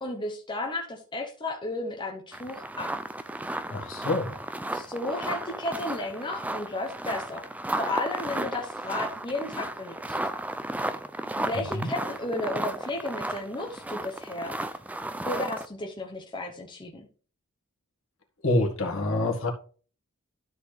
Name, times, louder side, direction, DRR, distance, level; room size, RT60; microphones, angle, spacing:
voice 1, 0.0-2.9 4.7-7.4 7.8-10.2 11.4-14.6 15.3-17.1, left 2 dB, 20° left, 0.9 m, -33 dB
sound 1, 2.3-15.7, right 1 dB, 5° right, 0.3 m, -34 dB
voice 2, 3.7-4.4 11.7-11.9 18.4-19.5, left 2 dB, 60° left, 1.7 m, -27 dB
12.5 x 4.2 x 3.3 m
head